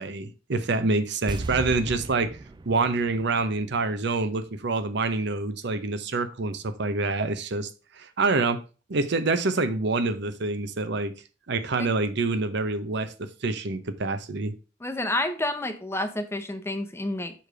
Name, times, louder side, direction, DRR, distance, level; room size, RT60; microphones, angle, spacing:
voice 1, 0.0-2.4 2.7-8.6 8.9-11.1 11.5-14.5, right 3 dB, 65° right, 11 dB, 0.7 m, -26 dB
sound 1, 1.3-4.5 4.7-4.8, right 3 dB, 25° right, 0.4 m, -37 dB
voice 2, 14.8-17.3, left 1 dB, 15° left, 7 dB, 0.8 m, -29 dB
7.0 x 3.3 x 6.0 m, 0.34 s
head